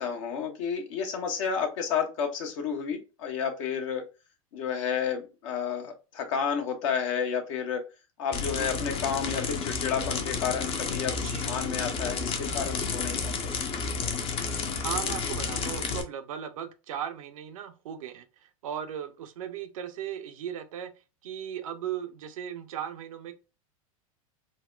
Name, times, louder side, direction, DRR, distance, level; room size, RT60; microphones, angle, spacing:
voice 1, 0.0-4.0 4.5-7.8 8.2-13.3, left 7 dB, 60° left, 1.1 m, -31 dB
Bike Chain Peddling, 8.3-16.0, left 5 dB, 30° left, 0.7 m, -31 dB
voice 2, 11.2-11.6 14.7-20.9 21.2-23.3, right 9 dB, 70° right, 0.7 m, -37 dB
3.9 x 2.1 x 2.3 m
hypercardioid pair, 95°, 18 cm